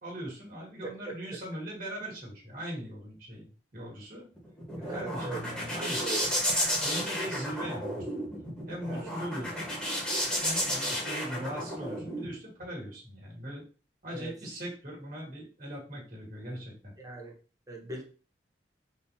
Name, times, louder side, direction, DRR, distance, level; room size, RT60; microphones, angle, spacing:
voice 1, 0.0-4.3 4.7-6.2 6.7-8.1 8.7-9.7 10.4-13.6 14.0-16.9, right 1 dB, 50° right, -3 dB, 1.6 m, -40 dB
voice 2, 0.8-1.1 4.8-5.4 5.7-6.3 8.9-9.1 14.1-14.3 17.0-17.3 17.7-18.0, right 3 dB, 20° right, 1 dB, 0.6 m, -39 dB
sound 1, 4.4-12.3, equal, 5° left, 1.2 m, -32 dB
3.8 x 2.5 x 2.7 m, 0.36 s
head